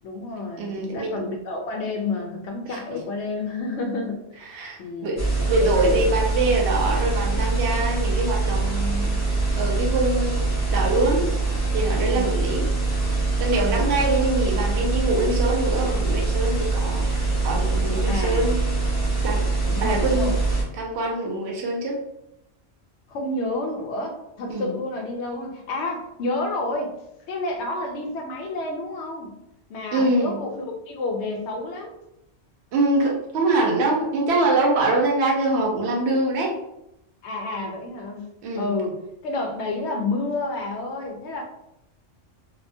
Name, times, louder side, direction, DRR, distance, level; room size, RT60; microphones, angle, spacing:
voice 1, 0.0-4.2 4.8-6.0 12.1-12.6 13.6-14.0 18.1-18.6 19.7-20.4 23.1-26.9 27.3-29.3 29.7-31.9 37.2-38.2 38.6-39.0 39.2-41.4, left 2 dB, 70° left, 3 dB, 0.8 m, -30 dB
voice 2, 0.6-1.2 2.7-2.8 4.4-5.2 5.5-10.4 10.7-11.2 11.7-12.7 13.0-18.6 19.2-19.4 19.8-20.4 20.7-22.0 24.5-24.7 29.9-30.4 32.7-36.5 38.4-38.7, right 2 dB, 65° right, -1 dB, 0.8 m, -24 dB
sound 1, 5.2-20.6, right 3 dB, 20° left, 0.5 m, -24 dB
2.8 x 2.1 x 2.5 m, 0.85 s
omnidirectional pair, 1.3 m